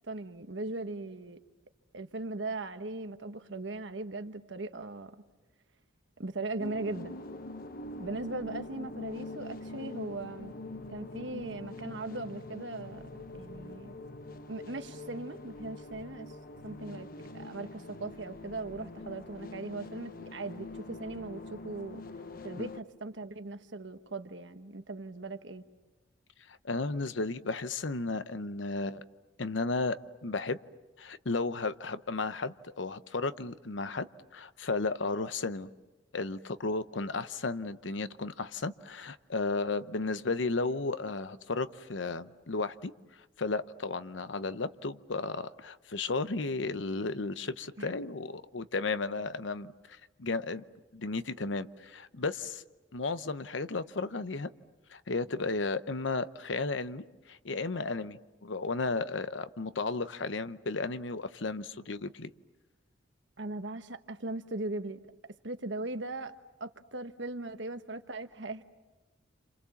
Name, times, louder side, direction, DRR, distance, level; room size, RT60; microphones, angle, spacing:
voice 1, 0.1-1.4 1.9-5.1 6.2-7.2 8.0-10.5 10.9-13.1 13.4-13.9 14.5-16.3 16.6-17.1 17.3-22.0 22.4-25.6 47.8-47.9 63.4-65.0 65.4-66.3 66.6-68.6, right 2 dB, 70° right, 8 dB, 1.3 m, -39 dB
sound 1, 6.6-22.8, left 2 dB, 50° left, 1.0 m, -44 dB
voice 2, 26.6-29.0 29.4-30.6 31.0-34.1 34.3-35.7 36.1-42.9 43.4-49.7 50.2-50.6 50.9-52.6 52.9-54.5 54.9-62.3, left 3 dB, 80° left, 13 dB, 0.9 m, -34 dB
29.0 x 28.0 x 7.2 m, 1.1 s
head